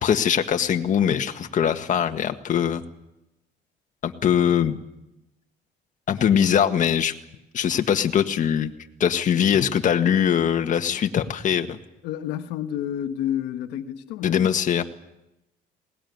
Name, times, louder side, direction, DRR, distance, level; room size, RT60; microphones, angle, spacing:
voice 1, 0.0-2.8 4.0-4.8 6.1-7.1 7.5-8.7 9.0-11.8 14.2-14.8, left 8 dB, 50° left, 1.7 m, -22 dB
voice 2, 12.0-14.7, left 11 dB, 90° left, 1.4 m, -30 dB
21.5 x 19.0 x 9.5 m
cardioid pair, 110°, 17 cm